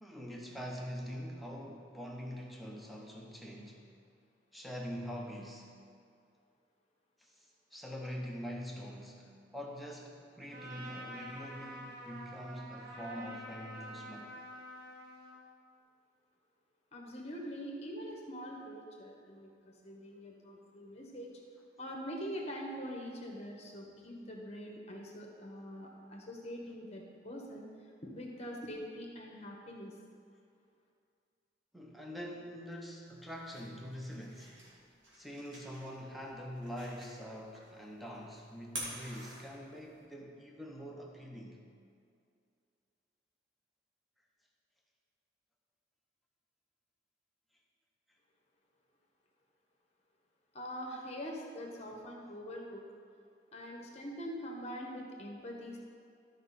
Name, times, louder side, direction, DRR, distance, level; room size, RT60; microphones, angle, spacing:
voice 1, 0.0-3.8 4.5-5.7 7.2-14.3 31.7-34.6 35.1-41.6, equal, ahead, -1 dB, 0.8 m, -44 dB
Trumpet, 10.5-15.4, equal, 60° right, 1.5 m, -47 dB
voice 2, 16.9-21.3 21.8-27.7 28.0-29.9 50.5-52.8 53.5-55.8, equal, 35° left, 0 dB, 1.2 m, -44 dB
sound 1, 33.1-40.0, right 1 dB, 85° right, 2.4 m, -49 dB
13.0 x 5.1 x 4.2 m, 2.4 s
head